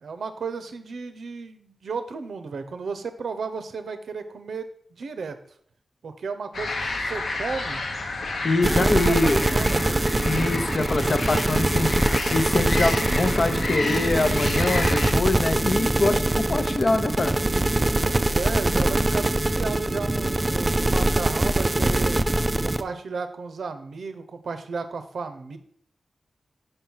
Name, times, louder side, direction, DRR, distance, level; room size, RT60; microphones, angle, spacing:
voice 1, 0.0-5.4 6.0-7.8 8.4-10.1 16.5-17.1 18.0-22.2 22.6-25.6, right 4 dB, 80° right, 9 dB, 0.7 m, -34 dB
sound 1, 6.5-15.1, left 2 dB, 75° left, 1.0 m, -30 dB
voice 2, 8.4-9.4 10.2-12.0 12.3-17.3, left 2 dB, 45° left, 8 dB, 0.6 m, -24 dB
sound 2, 8.6-22.8, right 2 dB, 20° right, 0.3 m, -23 dB
5.5 x 4.5 x 5.5 m, 0.63 s
wide cardioid pair, 130°, 0 cm